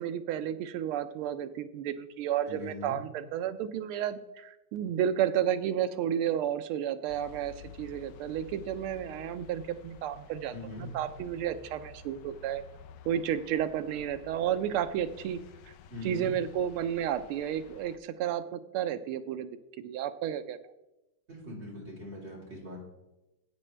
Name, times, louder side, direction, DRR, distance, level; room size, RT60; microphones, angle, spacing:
voice 1, 0.0-12.6 13.0-15.4 15.7-15.8 16.0-19.5 19.8-20.7, right 10 dB, 90° right, 11 dB, 1.5 m, -32 dB
voice 2, 2.5-3.0 10.5-10.9 15.9-16.3 21.3-22.8, left 1 dB, 30° right, -5 dB, 3.6 m, -41 dB
sound 1, 7.1-18.0, left 7 dB, 70° left, 1.2 m, -52 dB
14.0 x 8.7 x 3.3 m, 0.96 s
omnidirectional pair, 2.3 m